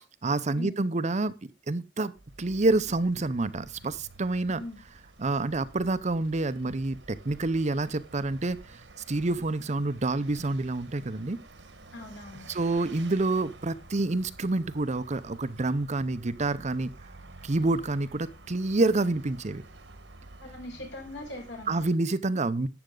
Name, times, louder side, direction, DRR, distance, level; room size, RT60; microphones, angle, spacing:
voice 1, 0.0-1.3 1.7-2.1 2.4-4.6 5.2-8.8 9.1-11.4 12.5-16.9 17.4-19.6 21.7-22.7, right 2 dB, 40° right, 14 dB, 0.7 m, -28 dB
Vehicle, 2.2-22.0, right 2 dB, 75° right, 1.5 m, -50 dB
voice 2, 11.9-12.5 20.4-21.9, left 1 dB, 75° left, 2 dB, 5.3 m, -41 dB
12.0 x 8.8 x 3.8 m, 0.26 s
head